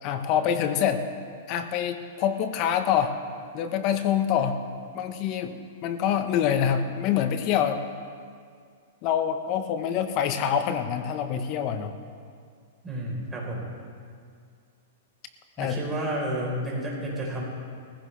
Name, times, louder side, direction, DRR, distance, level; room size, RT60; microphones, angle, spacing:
voice 1, 0.0-1.0 1.5-3.2 3.5-4.6 4.9-7.8 9.0-11.9 15.6-15.7, left 9 dB, 40° left, 8 dB, 1.2 m, -26 dB
voice 2, 12.8-13.7 15.6-17.4, right 1 dB, 10° right, -4 dB, 4.3 m, -31 dB
19.0 x 15.5 x 3.4 m, 2.2 s
hypercardioid pair, 140°, 0 cm